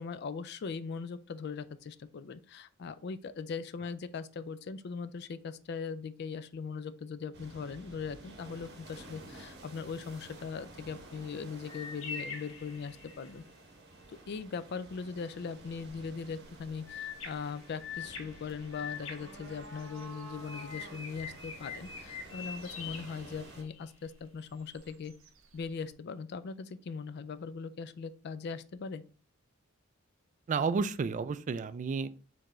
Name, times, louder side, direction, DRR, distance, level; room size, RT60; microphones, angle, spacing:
voice 1, 0.0-13.4 14.1-25.1 25.5-29.0, left 5 dB, 55° left, 14 dB, 0.4 m, -40 dB
sound 1, 7.3-23.6, right 2 dB, 55° right, 1.1 m, -52 dB
sound 2, 11.7-13.4 16.9-20.1 20.5-23.9, left 6 dB, 70° left, 1.0 m, -44 dB
sound 3, 15.5-25.9, right 1 dB, 70° right, 0.7 m, -55 dB
voice 2, 30.5-32.1, right 5 dB, 40° right, 13 dB, 0.3 m, -31 dB
4.7 x 3.6 x 3.0 m, 0.38 s
head